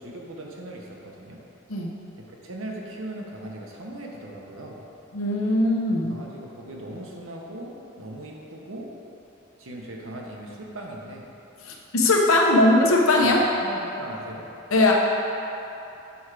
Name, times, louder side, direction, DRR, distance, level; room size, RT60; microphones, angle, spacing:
voice 1, 0.0-1.4 2.3-4.8 6.1-8.9 9.6-11.3 12.4-12.5 13.2-14.4, right 1 dB, 80° right, -1 dB, 1.0 m, -39 dB
voice 2, 5.1-6.2 11.6-13.4 14.7-14.9, left 2 dB, 85° left, -1 dB, 0.9 m, -20 dB
7.2 x 4.4 x 4.9 m, 2.9 s
head